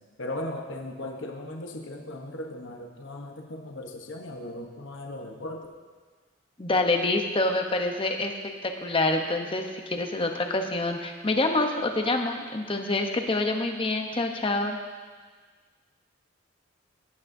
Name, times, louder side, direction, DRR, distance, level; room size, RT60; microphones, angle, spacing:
voice 1, 0.2-5.7, left 1 dB, 65° left, 2 dB, 1.0 m, -37 dB
voice 2, 6.6-8.3 8.6-14.8, left 2 dB, 25° left, 4 dB, 0.8 m, -26 dB
16.0 x 9.5 x 2.7 m, 1.5 s
head